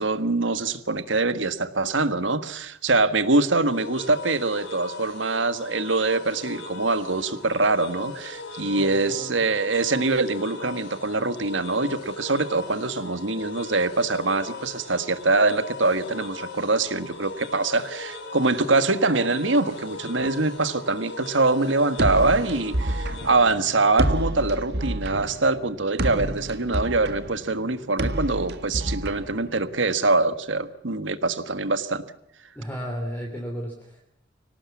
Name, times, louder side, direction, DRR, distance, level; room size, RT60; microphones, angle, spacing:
voice 1, 0.0-32.0, right 3 dB, 80° right, 12 dB, 1.6 m, -24 dB
sound 1, 3.7-23.3, left 3 dB, 70° left, 6.1 m, -39 dB
voice 2, 8.6-9.4 32.5-34.0, equal, 10° left, 0 dB, 3.2 m, -34 dB
sound 2, 22.0-29.9, right 1 dB, 60° right, 1.6 m, -29 dB
25.0 x 18.5 x 7.3 m, 0.73 s
head